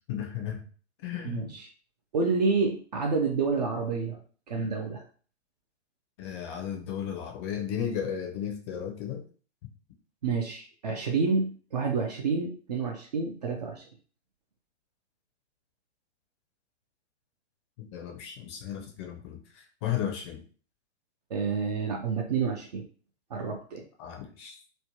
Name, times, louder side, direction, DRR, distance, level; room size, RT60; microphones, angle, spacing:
voice 1, 0.1-0.6 1.0-1.4 6.2-9.2 17.8-20.4 24.0-24.6, left 9 dB, 25° left, 2 dB, 0.5 m, -34 dB
voice 2, 1.2-1.7 2.1-4.2 4.5-5.0 10.2-13.9 21.3-22.9 23.3-23.8, right 4 dB, 35° right, 2 dB, 0.4 m, -29 dB
3.1 x 2.1 x 2.7 m, 0.41 s
figure-of-eight pair, 115°, 35 cm